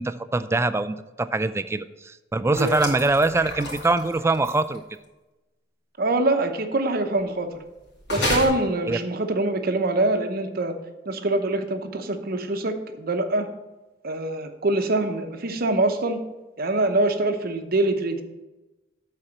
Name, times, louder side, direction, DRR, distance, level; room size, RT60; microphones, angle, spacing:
voice 1, 0.0-4.8 8.9-9.0, right 2 dB, 15° right, 12 dB, 0.3 m, -23 dB
sound 1, 2.5-4.8 8.0-8.5, left 1 dB, 65° left, 2.6 m, -29 dB
voice 2, 6.0-7.6 8.1-10.8 11.1-13.5 14.0-16.2 16.6-18.2, right 2 dB, 55° right, 7 dB, 0.8 m, -24 dB
7.9 x 4.3 x 7.0 m, 1.1 s
head